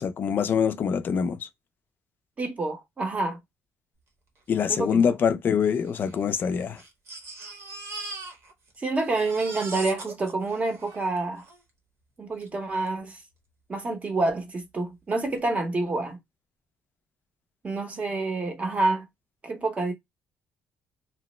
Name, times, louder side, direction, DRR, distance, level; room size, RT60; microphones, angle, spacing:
voice 1, 0.0-1.4 4.5-6.8, left 7 dB, 40° left, 0.3 m, -24 dB
voice 2, 2.4-3.4 4.7-5.1 8.8-11.4 12.2-13.2 13.7-16.2 17.6-19.0 19.4-19.9, right 2 dB, 25° right, 0.7 m, -28 dB
Crying sobbing, 4.7-4.8 5.0-5.1 5.9-8.8 9.0-11.6 12.4-12.5 12.9-13.0, right 2 dB, 55° right, 0.9 m, -41 dB
2.9 x 2.0 x 3.0 m
cardioid pair, 155°, 5 cm